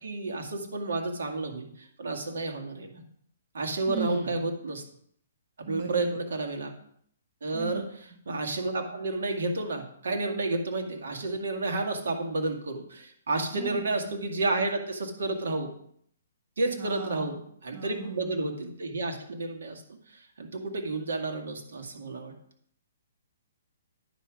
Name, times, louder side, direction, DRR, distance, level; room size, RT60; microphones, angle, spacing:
voice 1, 0.0-3.0 3.5-4.8 5.6-6.7 7.4-7.8 8.3-15.7 16.6-19.8 20.1-22.3, right 2 dB, 75° right, 3 dB, 2.0 m, -31 dB
voice 2, 3.9-4.3 5.7-6.2 7.5-7.9 13.5-13.9 16.8-17.4 17.7-18.3, right 6 dB, 30° right, 2 dB, 1.2 m, -37 dB
9.6 x 6.1 x 5.1 m, 0.66 s
hypercardioid pair, 170°, 0 cm